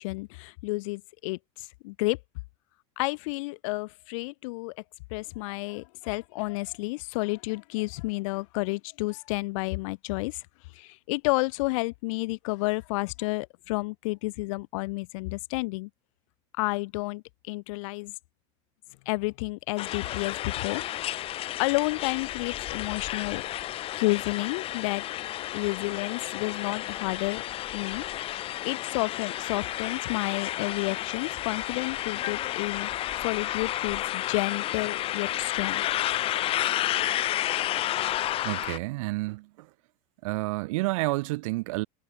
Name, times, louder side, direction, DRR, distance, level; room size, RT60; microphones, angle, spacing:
voice 1, 0.0-2.2 3.0-4.7 5.1-10.4 10.7-15.9 16.6-18.1 19.0-21.3 21.6-23.4 24.0-25.0 25.5-27.4 27.7-28.0 28.6-35.8, left 25 dB, 70° left, 1.4 m, -31 dB
sound 1, 19.8-38.8, left 13 dB, 35° left, 2.1 m, -31 dB
voice 2, 38.4-39.7 40.2-41.9, right 22 dB, 80° right, 1.0 m, -30 dB
cardioid pair, 165°, 17 cm